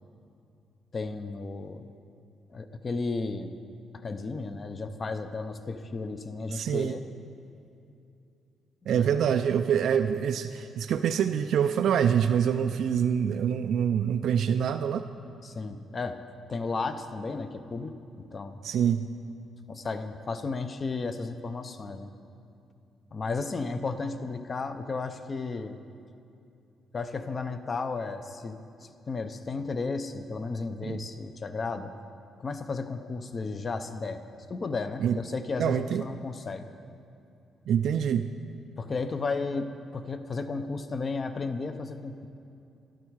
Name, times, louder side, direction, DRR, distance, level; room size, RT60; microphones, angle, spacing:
voice 1, 0.9-1.9 2.5-3.5 4.0-7.1 8.8-9.2 15.4-16.2 16.5-18.6 19.7-22.1 23.1-25.8 26.9-31.9 32.4-34.2 34.5-36.7 38.8-42.3, left 4 dB, 35° left, 10 dB, 0.7 m, -34 dB
voice 2, 6.5-7.0 8.9-15.0 18.6-19.1 30.8-31.0 35.0-35.2 35.6-36.0 37.7-38.3, right 8 dB, 70° right, 8 dB, 0.3 m, -25 dB
12.0 x 11.5 x 4.7 m, 2.6 s
cardioid pair, 90°, 0 cm